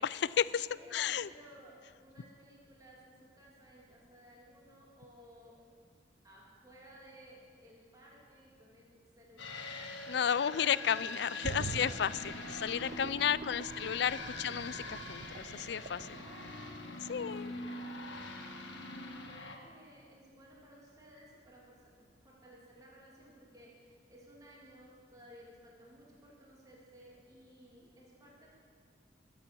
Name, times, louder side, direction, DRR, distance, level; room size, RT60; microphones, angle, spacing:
voice 1, 0.0-1.3 10.1-16.1 17.1-17.5, left 8 dB, 65° left, 18 dB, 0.4 m, -33 dB
voice 2, 0.7-5.6 6.2-12.0 13.0-14.0 14.3-14.4 16.1-28.5, right 1 dB, 20° right, -4 dB, 2.8 m, -57 dB
sound 1, 9.4-19.6, left 2 dB, 85° left, 1.6 m, -44 dB
sound 2, 11.4-17.2 17.6-17.7, right 3 dB, 50° right, 0.4 m, -45 dB
20.0 x 8.4 x 7.0 m, 2.1 s
head